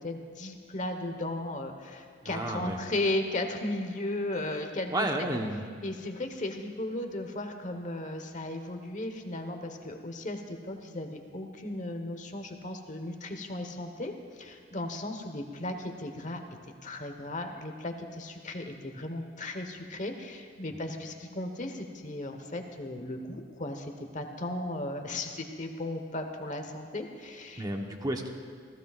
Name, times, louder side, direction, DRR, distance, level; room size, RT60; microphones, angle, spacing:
voice 1, 0.0-5.1 5.8-16.4 16.8-27.6, left 1 dB, 40° left, 5 dB, 1.2 m, -36 dB
voice 2, 2.2-2.8 4.9-5.7 27.6-28.3, right 1 dB, 20° right, 2 dB, 1.1 m, -31 dB
27.5 x 15.5 x 2.5 m, 2.2 s
head